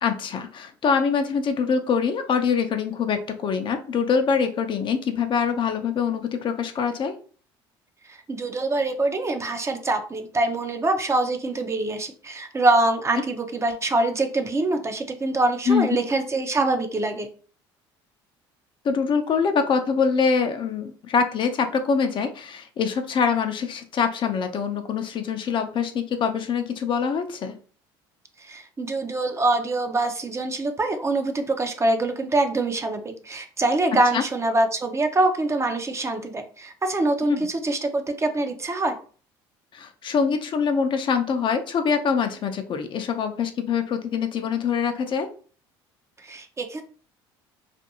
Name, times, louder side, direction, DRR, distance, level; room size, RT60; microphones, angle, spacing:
voice 1, 0.0-7.1 15.7-16.0 18.8-27.6 34.1-34.2 37.3-37.4 39.7-45.3, left 6 dB, 40° left, 6 dB, 0.5 m, -24 dB
voice 2, 8.1-17.3 28.4-38.9 46.2-46.8, right 2 dB, 20° right, 6 dB, 0.5 m, -24 dB
2.5 x 2.5 x 2.7 m, 0.41 s
hypercardioid pair, 70°, 12 cm